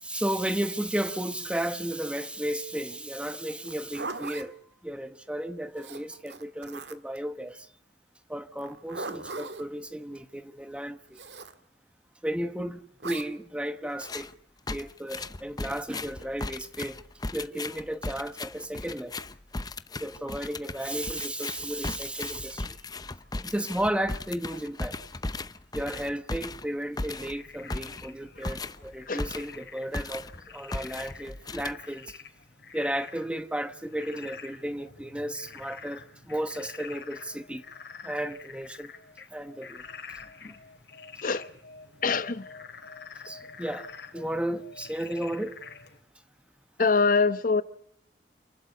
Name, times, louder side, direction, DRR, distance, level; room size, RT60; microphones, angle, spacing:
voice 1, 0.0-4.5 4.8-7.7 8.3-11.2 12.2-14.3 14.7-17.0 17.3-19.2 20.0-22.8 23.4-25.0 25.7-32.2 32.7-37.6 38.0-38.9 39.3-39.8 40.4-40.5 43.2-45.6, right 1 dB, 5° right, 1.1 m, -34 dB
Zipper (clothing), 3.6-4.5 5.8-7.2 8.6-9.7 11.1-11.5 13.0-13.3, right 3 dB, 80° right, 1.8 m, -39 dB
sound 1, 14.0-14.3 14.7-29.7 29.9-30.4 30.7-32.1, left 2 dB, 25° left, 0.8 m, -37 dB
Frog, 27.3-46.0, left 5 dB, 65° left, 3.5 m, -47 dB
voice 2, 42.0-42.4 46.8-47.6, left 4 dB, 50° left, 1.0 m, -23 dB
29.0 x 12.0 x 8.4 m
head